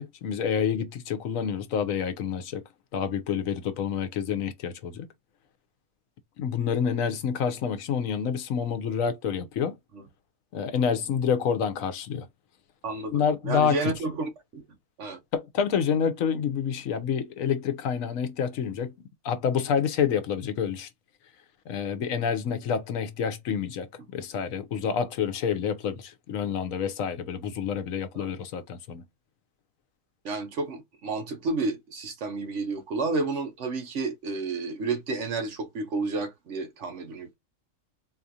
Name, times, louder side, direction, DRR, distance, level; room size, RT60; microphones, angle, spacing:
voice 1, 0.0-2.6 2.9-5.1 6.4-9.8 10.5-12.3 13.1-13.9 15.3-18.9 19.2-20.9 21.7-29.0, left 7 dB, 80° left, 1.1 m, -28 dB
voice 2, 12.8-14.6 15.0-15.2 28.2-28.3 30.2-37.3, right 3 dB, 60° right, 1.2 m, -31 dB
4.1 x 2.4 x 2.7 m
omnidirectional pair, 1.4 m